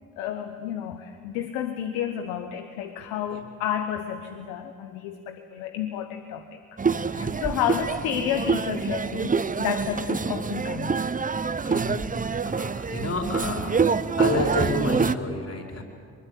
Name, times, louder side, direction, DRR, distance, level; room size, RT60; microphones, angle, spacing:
voice 1, 0.2-6.6 6.9-11.0, left 10 dB, 85° left, 7 dB, 1.0 m, -31 dB
sound 1, 6.8-15.2, right 5 dB, 25° right, 0.8 m, -26 dB
voice 2, 11.6-12.0 12.4-13.8 14.2-15.8, left 2 dB, 50° left, 1 dB, 4.8 m, -29 dB
23.0 x 21.5 x 8.5 m, 2.3 s
hypercardioid pair, 45°, 33 cm